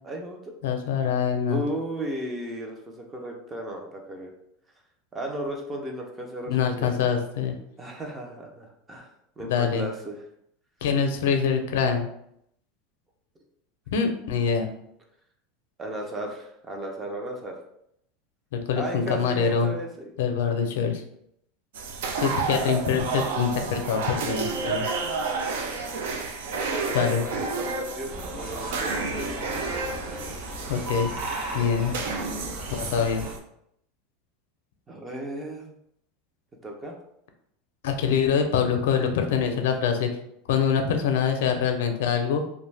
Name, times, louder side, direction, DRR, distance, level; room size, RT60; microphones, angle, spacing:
voice 1, 0.0-0.5 1.5-4.3 5.1-6.9 7.8-10.2 15.8-17.6 18.7-20.1 26.5-29.4 34.9-35.7 36.6-36.9, right 1 dB, 10° right, 1 dB, 0.4 m, -35 dB
voice 2, 0.6-1.6 6.5-7.6 9.5-9.8 10.8-12.1 13.9-14.7 18.5-19.7 20.2-21.0 22.2-24.8 26.9-27.2 30.7-31.1 31.5-32.0 32.7-33.2 37.8-40.1 40.5-42.4, left 7 dB, 85° left, 5 dB, 0.4 m, -24 dB
sound 1, 21.7-33.4, right 4 dB, 85° right, 0.4 m, -31 dB
sound 2, 28.1-33.3, right 1 dB, 50° right, 0.8 m, -37 dB
2.4 x 2.2 x 3.2 m, 0.74 s
supercardioid pair, 180°, 0 cm